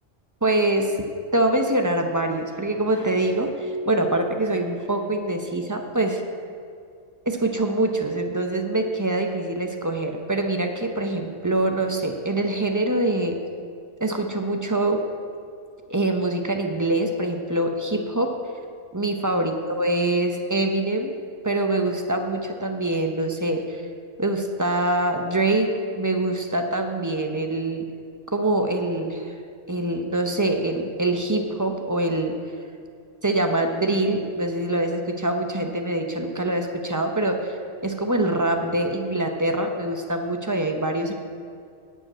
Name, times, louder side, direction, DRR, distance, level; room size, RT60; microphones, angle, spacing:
voice 1, 0.4-0.9 1.3-6.2 7.3-13.4 14.0-15.0 15.9-18.3 18.9-21.1 21.4-23.8 24.2-25.7 26.0-27.9 28.3-29.3 29.7-32.4 33.2-37.5 37.8-41.1, right 2 dB, 20° right, 4 dB, 0.5 m, -24 dB
11.5 x 5.1 x 8.6 m, 2.3 s
omnidirectional pair, 1.3 m